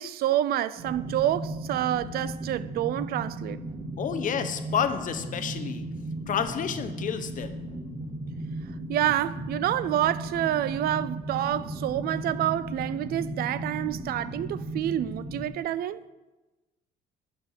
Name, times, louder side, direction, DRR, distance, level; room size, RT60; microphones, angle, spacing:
voice 1, 0.0-3.6 8.9-16.0, right 12 dB, 65° right, 0.5 m, -28 dB
sound 1, 0.8-15.5, right 1 dB, 40° right, 2.4 m, -36 dB
voice 2, 4.0-5.9 6.3-7.6, left 8 dB, 50° left, 1.0 m, -30 dB
11.5 x 6.6 x 5.7 m
cardioid pair, 110°, 17 cm